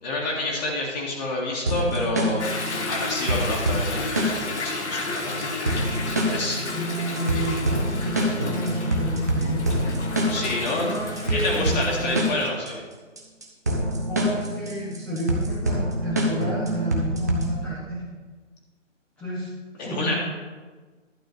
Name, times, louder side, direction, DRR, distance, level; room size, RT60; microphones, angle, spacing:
voice 1, 0.0-2.4 2.9-5.5 6.3-6.6 10.3-10.9 11.3-12.8 19.8-20.1, left 2 dB, 35° left, -4 dB, 2.0 m, -28 dB
sound 1, 1.7-17.7, equal, 15° right, 0.5 m, -26 dB
Toilet flush / Drip / Trickle dribble, 2.4-12.5, left 2 dB, 60° left, 1.7 m, -32 dB
voice 2, 6.7-9.8 10.7-12.4 14.1-18.0 19.2-19.5 19.8-20.1, right 1 dB, 5° left, -9 dB, 0.9 m, -31 dB
11.5 x 4.3 x 8.1 m, 1.3 s
figure-of-eight pair, 150°, 38 cm